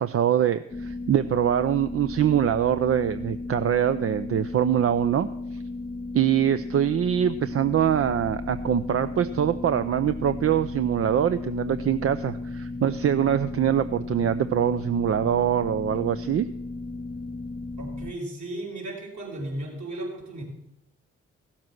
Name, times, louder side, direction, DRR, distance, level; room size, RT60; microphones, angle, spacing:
voice 1, 0.0-5.3 6.1-16.5, right 9 dB, 45° right, 11 dB, 0.6 m, -24 dB
sound 1, 0.7-18.1, left 3 dB, 15° left, 0.6 m, -35 dB
voice 2, 17.8-20.4, right 1 dB, 60° right, -2 dB, 4.6 m, -35 dB
15.5 x 7.4 x 6.0 m, 0.82 s
hypercardioid pair, 45°, 32 cm